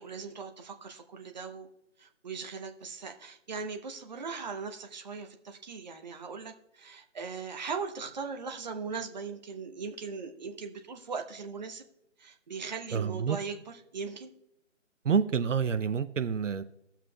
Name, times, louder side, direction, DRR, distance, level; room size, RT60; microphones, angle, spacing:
voice 1, 0.0-1.7 2.0-11.8 12.2-13.6 13.9-14.3, right 5 dB, 35° right, 0.9 m, -39 dB
voice 2, 12.9-13.4 15.0-16.6, right 6 dB, 75° right, 0.7 m, -28 dB
21.0 x 7.4 x 2.3 m
figure-of-eight pair, 155°, 38 cm